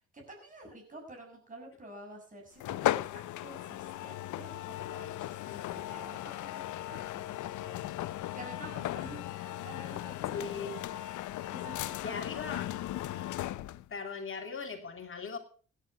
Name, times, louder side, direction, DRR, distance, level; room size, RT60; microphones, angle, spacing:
voice 1, 0.1-7.8 8.3-10.6 10.9-11.0 11.5-12.4, right 1 dB, 25° right, 1 dB, 6.7 m, -50 dB
sound 1, 2.6-13.9, left 14 dB, 75° left, 0.7 m, -37 dB
voice 2, 10.3-10.7 12.0-12.7 13.9-15.4, left 5 dB, 45° left, 6 dB, 2.6 m, -39 dB
17.0 x 9.5 x 5.9 m, 0.42 s
cardioid pair, 90°, 30 cm